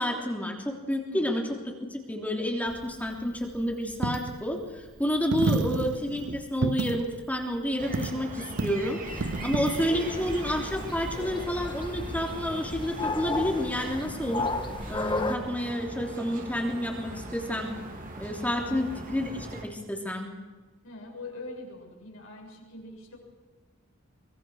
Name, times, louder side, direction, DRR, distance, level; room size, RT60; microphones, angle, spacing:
voice 1, 0.0-14.5 14.9-17.8 18.2-19.3 19.6-20.3, equal, 10° left, 1 dB, 3.2 m, -30 dB
Coin (dropping), 2.7-11.2, right 3 dB, 60° right, 0.6 m, -33 dB
voice 2, 5.4-5.7 9.4-9.7 18.6-18.9 20.8-23.2, left 2 dB, 70° left, 0 dB, 7.1 m, -43 dB
sound 1, 7.8-19.6, right 2 dB, 40° right, 3.5 m, -41 dB
sound 2, 9.1-15.4, left 2 dB, 25° left, 1.8 m, -34 dB
24.5 x 21.5 x 6.4 m, 1.3 s
head